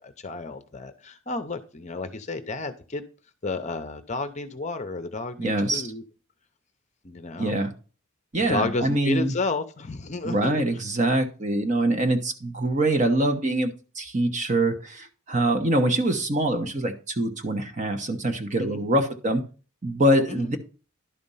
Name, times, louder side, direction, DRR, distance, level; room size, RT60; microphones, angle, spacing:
voice 1, 0.0-3.0 3.4-6.0 7.0-7.6 8.5-10.6 18.6-18.9 20.3-20.5, left 3 dB, 30° left, 9 dB, 0.7 m, -31 dB
voice 2, 5.4-5.9 7.4-7.7 8.3-9.4 10.2-19.4 19.8-20.6, right 1 dB, 35° right, 6 dB, 1.0 m, -24 dB
11.5 x 4.3 x 5.5 m, 0.36 s
head